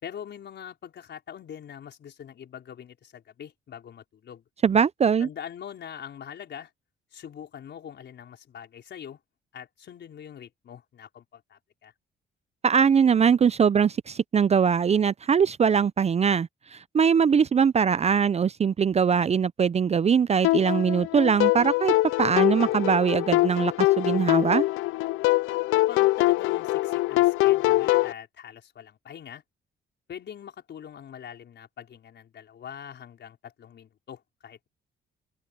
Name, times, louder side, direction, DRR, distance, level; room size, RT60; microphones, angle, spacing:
voice 1, 0.0-4.4 5.2-6.7 7.1-9.2 9.5-11.9 25.7-29.4 30.1-34.7, left 9 dB, 60° left, 5.0 m, -43 dB
voice 2, 4.6-5.3 12.6-21.9 22.2-24.6, right 6 dB, 35° right, 0.5 m, -22 dB
sound 1, 20.4-28.1, left 18 dB, 85° left, 0.4 m, -23 dB
open air
cardioid pair, 90°, 20 cm